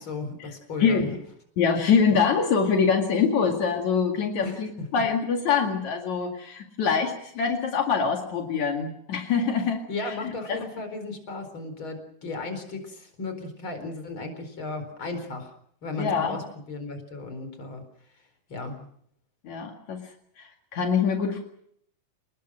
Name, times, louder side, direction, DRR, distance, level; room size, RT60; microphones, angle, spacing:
voice 1, 0.1-1.1 4.4-4.9 9.9-15.5 15.8-17.8 18.5-18.9, left 3 dB, 40° left, 7 dB, 5.1 m, -35 dB
voice 2, 1.6-10.7 16.0-16.4 19.4-20.1 20.4-21.4, left 6 dB, 75° left, 2 dB, 3.5 m, -24 dB
29.5 x 20.0 x 6.3 m, 0.68 s
omnidirectional pair, 3.3 m